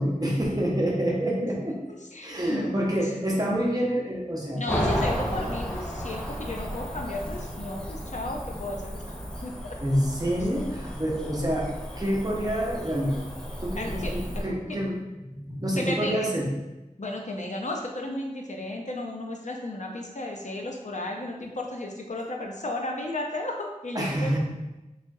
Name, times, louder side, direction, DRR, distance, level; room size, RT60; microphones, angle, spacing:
voice 1, 0.0-1.8 2.2-4.7 9.8-11.7 11.9-13.2 13.6-15.0 15.2-16.5 23.9-24.4, equal, 25° right, -3 dB, 0.9 m, -27 dB
voice 2, 1.9-2.8 4.6-9.1 9.4-9.8 13.8-14.8 15.8-16.3 17.0-24.3, left 1 dB, 60° left, 1 dB, 0.6 m, -34 dB
Cricket / Motor vehicle (road), 4.7-14.4, equal, 5° left, 0.6 m, -33 dB
3.5 x 3.4 x 2.7 m, 1.0 s
wide cardioid pair, 45°, 14 cm